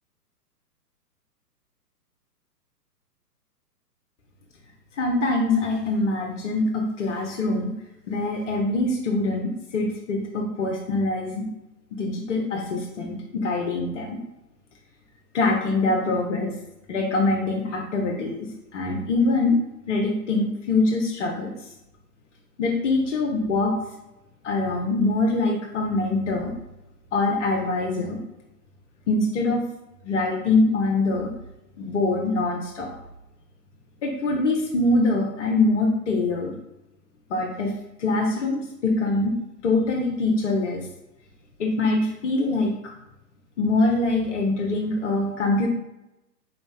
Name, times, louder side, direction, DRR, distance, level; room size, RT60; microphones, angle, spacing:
voice 1, 4.9-7.7 8.1-11.5 11.9-14.2 15.3-16.5 16.9-19.6 19.9-21.5 22.6-23.8 24.4-26.5 27.1-28.2 29.1-29.6 30.0-31.3 31.8-32.9 34.0-36.6 37.3-37.7 38.0-39.4 39.6-40.9 41.6-42.7 43.6-45.7, left 2 dB, 50° left, 1 dB, 0.9 m, -24 dB
5.2 x 4.1 x 2.2 m, 0.93 s
figure-of-eight pair, 120°, 48 cm